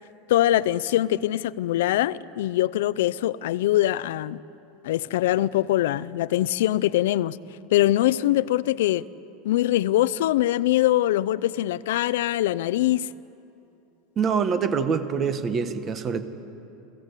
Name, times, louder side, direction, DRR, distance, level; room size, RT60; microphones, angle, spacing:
voice 1, 0.3-4.4 4.8-7.4 7.7-9.1 9.4-13.1, left 14 dB, 80° left, 0.5 m, -23 dB
voice 2, 14.2-16.2, right 6 dB, 25° right, 1.2 m, -25 dB
29.0 x 17.0 x 8.3 m
supercardioid pair, 170°, 0 cm